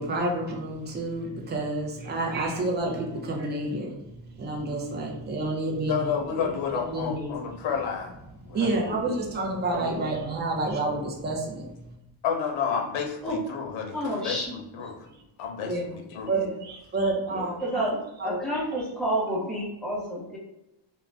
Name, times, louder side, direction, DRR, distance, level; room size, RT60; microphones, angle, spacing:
voice 1, 0.0-6.2 6.8-7.4 8.5-11.9 15.0-15.2 15.6-16.0 16.3-17.9 18.2-18.8, right 2 dB, 25° right, 0 dB, 0.5 m, -29 dB
voice 2, 5.9-8.1 8.5-8.6 8.9-9.0 12.2-14.9 15.4-16.3 17.0-17.1, left 7 dB, 75° left, 2 dB, 0.7 m, -30 dB
voice 3, 13.9-14.6 16.3-16.5 17.3-20.4, equal, ahead, -6 dB, 0.8 m, -30 dB
2.5 x 2.1 x 3.2 m, 0.92 s
cardioid pair, 145°, 46 cm